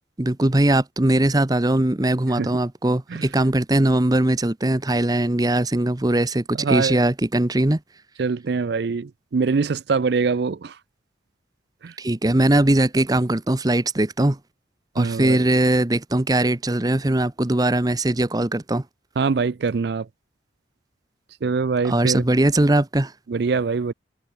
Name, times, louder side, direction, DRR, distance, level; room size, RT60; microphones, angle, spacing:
voice 1, 0.2-7.8 12.0-14.4 14.9-18.8 21.8-23.1, right 1 dB, 20° right, 0.8 m, -20 dB
voice 2, 6.6-7.0 8.2-10.7 11.8-11.9 15.0-15.5 19.2-20.1 21.4-22.2 23.3-23.9, right 4 dB, 55° right, 0.4 m, -23 dB
head